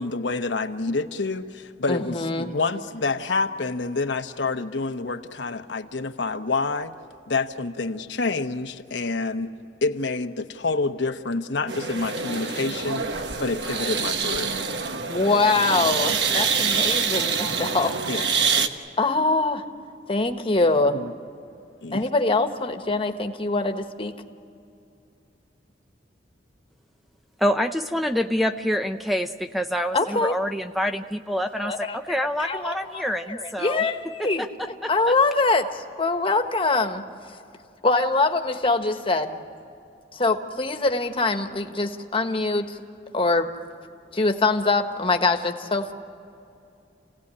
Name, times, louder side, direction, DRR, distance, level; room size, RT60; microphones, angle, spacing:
voice 1, 0.0-6.9 7.3-9.5 9.8-13.0 13.4-14.5 18.1-18.5 20.9-21.1 21.8-22.1, left 3 dB, 80° left, 6 dB, 1.0 m, -28 dB
voice 2, 1.9-2.5 15.1-18.2 19.0-19.6 20.1-21.0 21.9-24.2 29.9-30.3 31.6-32.0 32.4-34.4 34.9-37.0 37.8-39.4 40.1-42.8 43.1-43.5 44.1-45.9, left 3 dB, 30° left, 6 dB, 1.4 m, -23 dB
sound 1, 11.7-18.7, right 5 dB, 70° right, 1.3 m, -26 dB
voice 3, 27.4-33.8 34.2-35.1, equal, ahead, 7 dB, 0.6 m, -27 dB
29.0 x 17.5 x 9.8 m, 2.6 s
head